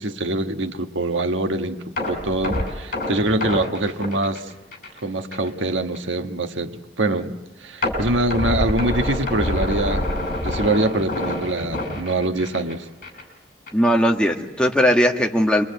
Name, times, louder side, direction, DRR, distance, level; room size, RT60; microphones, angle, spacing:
voice 1, 0.0-1.8 2.1-4.5 5.0-10.1 10.4-12.9, right 2 dB, 85° right, 6 dB, 1.4 m, -24 dB
sound 1, 2.0-5.0 5.3-5.5 5.9-6.0 7.8-12.7 13.0-13.2 13.7-13.8, left 1 dB, 45° left, 5.2 m, -26 dB
voice 2, 13.7-15.6, equal, 5° left, 1 dB, 1.6 m, -18 dB
27.5 x 22.5 x 8.2 m, 1.1 s
head